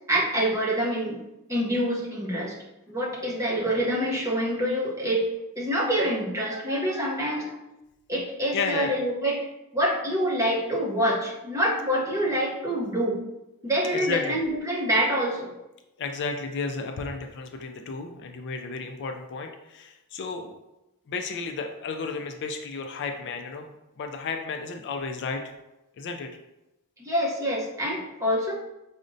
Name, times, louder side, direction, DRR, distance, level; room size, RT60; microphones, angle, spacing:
voice 1, 0.1-1.2 1.5-2.6 2.9-5.3 5.6-7.6 8.1-9.5 9.7-13.2 13.6-15.5 27.0-28.5, equal, 15° right, -3 dB, 0.7 m, -26 dB
voice 2, 8.5-8.9 13.9-14.4 16.0-20.6 21.1-23.7 24.0-25.5 26.0-26.3, left 4 dB, 55° left, 5 dB, 0.3 m, -33 dB
4.9 x 2.1 x 2.6 m, 0.95 s
head